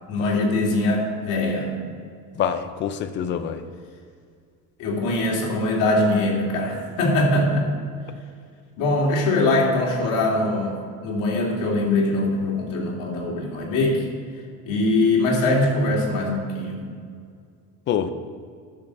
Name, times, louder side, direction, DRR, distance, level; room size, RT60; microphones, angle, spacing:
voice 1, 0.1-1.8 4.8-7.7 8.8-14.1 14.6-16.8, left 2 dB, 70° left, -1 dB, 2.6 m, -22 dB
voice 2, 2.4-3.6 17.9-18.1, left 8 dB, 35° left, 10 dB, 0.5 m, -25 dB
10.5 x 6.3 x 6.6 m, 2.2 s
cardioid pair, 180°, 34 cm